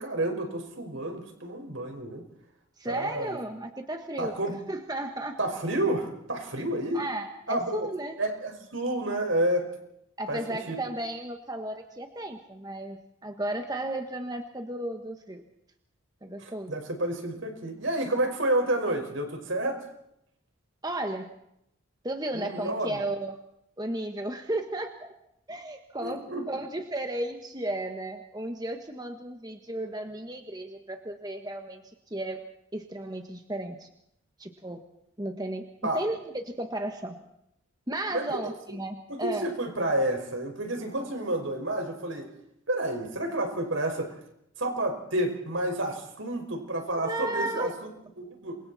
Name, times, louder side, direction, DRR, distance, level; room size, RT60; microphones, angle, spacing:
voice 1, 0.0-2.2 2.8-3.4 4.2-4.6 5.4-7.0 7.5-7.9 8.2-9.7 10.3-10.8 16.4-19.8 22.3-23.0 26.0-26.7 35.8-36.0 38.1-38.5 39.1-42.3 42.7-44.1 44.6-47.7 48.2-48.6, right 1 dB, 70° right, 4 dB, 5.4 m, -30 dB
voice 2, 2.8-4.3 4.7-5.4 6.9-8.2 10.2-15.4 16.2-16.7 20.8-21.3 22.0-23.4 23.8-25.1 25.5-31.8 32.1-32.4 32.7-33.9 34.4-34.8 35.2-35.6 35.9-37.1 37.9-39.5 47.0-47.7, right 1 dB, 20° right, 5 dB, 1.5 m, -34 dB
28.5 x 24.5 x 4.3 m, 0.78 s
head